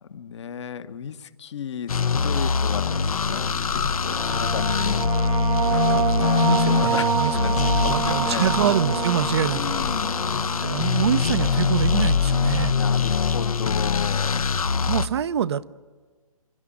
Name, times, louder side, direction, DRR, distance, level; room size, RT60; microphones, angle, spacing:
voice 1, 0.0-6.3 6.7-8.5 9.5-10.2 12.7-14.5, left 7 dB, 50° left, 1.1 m, -34 dB
Distorted reese bass, 1.9-15.1, left 5 dB, 75° left, 0.9 m, -23 dB
sound 1, 4.0-11.2, right 8 dB, 70° right, 0.9 m, -28 dB
voice 2, 6.4-9.6 10.6-12.8 14.9-15.7, right 9 dB, 45° right, 0.6 m, -25 dB
26.0 x 11.5 x 10.0 m
figure-of-eight pair, 145°, 18 cm